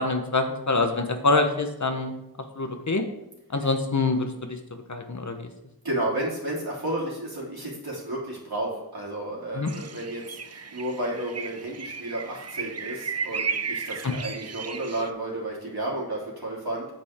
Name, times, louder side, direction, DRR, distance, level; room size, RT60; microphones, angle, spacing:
voice 1, 0.0-2.1 2.6-3.0 3.5-4.6 4.9-5.5 9.5-9.7 14.0-14.1, left 3 dB, 50° left, 6 dB, 1.2 m, -25 dB
voice 2, 5.8-16.9, right 1 dB, 80° right, -5 dB, 3.4 m, -32 dB
sound 1, 9.7-15.1, right 5 dB, 45° right, 0.6 m, -34 dB
8.9 x 8.4 x 3.7 m, 0.85 s
wide cardioid pair, 50°, 37 cm